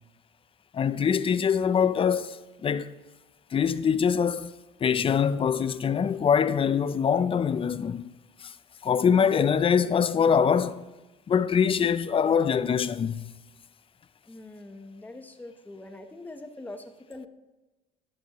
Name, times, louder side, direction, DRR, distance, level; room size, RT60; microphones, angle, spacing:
voice 1, 0.7-2.9 3.5-4.5 4.8-8.1 8.4-8.5 8.8-10.9 11.3-13.3, left 7 dB, 30° left, 0.5 m, -24 dB
voice 2, 14.3-17.3, left 2 dB, 10° left, 1.1 m, -43 dB
11.5 x 11.0 x 3.1 m
cardioid pair, 110°, 17 cm